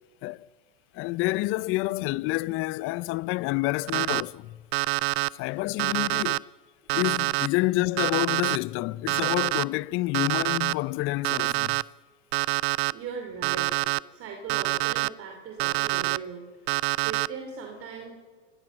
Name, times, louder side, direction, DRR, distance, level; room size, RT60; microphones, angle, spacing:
voice 1, 0.9-4.6 5.4-6.5 6.9-11.8, left 19 dB, 35° left, 0.5 m, -28 dB
Alarm, 3.9-4.2 4.7-5.3 5.8-6.4 6.9-7.5 8.0-8.6 9.1-9.6 10.1-10.7 11.2-11.8 12.3-12.9 13.4-14.0 14.5-15.1 15.6-16.2 16.7-17.3, right 21 dB, 60° right, 0.6 m, -26 dB
voice 2, 12.9-13.8 14.1-16.5 16.8-18.1, right 6 dB, 40° right, 3.1 m, -39 dB
26.0 x 15.5 x 7.6 m
hypercardioid pair, 110°, 35 cm